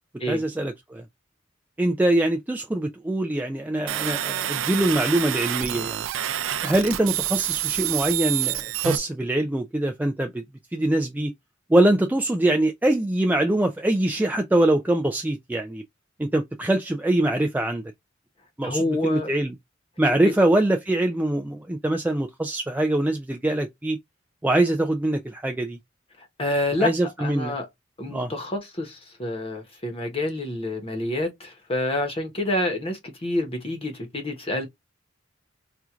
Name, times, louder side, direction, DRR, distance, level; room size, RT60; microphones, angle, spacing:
voice 1, 0.3-1.0 1.8-6.0 6.6-10.4 10.7-11.3 11.7-15.8 16.2-17.8 18.6-19.6 20.0-24.0 24.4-25.8 26.8-27.6 28.1-28.3, right 1 dB, 10° right, 0.3 m, -23 dB
sound 1, 3.9-9.0, right 12 dB, 85° right, 0.4 m, -27 dB
voice 2, 18.6-19.3 26.4-26.9 27.2-27.7 28.0-34.7, left 1 dB, 30° left, 1.0 m, -28 dB
4.3 x 2.4 x 2.4 m
head